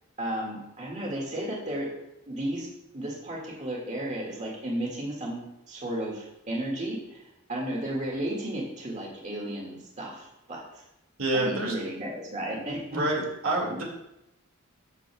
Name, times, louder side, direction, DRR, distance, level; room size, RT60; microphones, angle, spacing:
voice 1, 0.2-1.9 2.3-2.7 2.9-5.4 5.7-10.8 11.3-13.0, right 1 dB, 35° right, -3 dB, 1.8 m, -33 dB
voice 2, 11.2-11.7 12.5-12.6 12.9-13.8, right 2 dB, 85° right, -1 dB, 2.0 m, -27 dB
12.5 x 6.4 x 2.2 m, 0.85 s
head